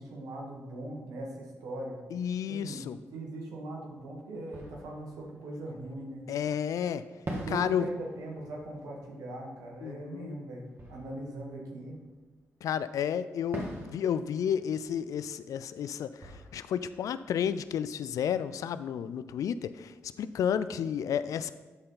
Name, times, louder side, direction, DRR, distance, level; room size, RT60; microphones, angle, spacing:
voice 1, 0.0-2.0 2.4-6.3 7.4-12.0, right 1 dB, 80° right, -1 dB, 1.6 m, -40 dB
voice 2, 2.1-3.0 6.3-7.0 7.5-7.9 9.8-10.4 12.6-21.5, left 8 dB, 75° left, 14 dB, 0.4 m, -31 dB
Fireworks, 4.5-6.4 7.2-12.6 13.5-18.3, right 1 dB, 40° right, 1.9 m, -45 dB
12.0 x 4.2 x 3.9 m, 1.3 s
supercardioid pair, 45°, 6 cm